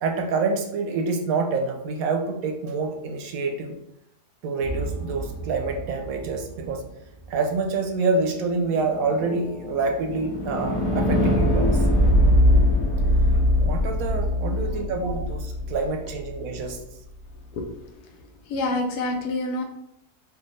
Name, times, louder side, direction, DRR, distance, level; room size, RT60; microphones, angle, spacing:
voice 1, 0.0-3.8 4.4-6.8 7.3-12.0 13.3-16.8, right 4 dB, 70° right, 4 dB, 0.9 m, -27 dB
sound 1, 4.6-6.8 8.6-16.7, left 1 dB, 35° left, 0.9 m, -23 dB
voice 2, 14.4-14.9 17.5-17.7 18.0-18.1 18.4-19.6, left 2 dB, 85° left, 2 dB, 1.3 m, -28 dB
4.7 x 2.3 x 3.1 m, 0.79 s
omnidirectional pair, 1.7 m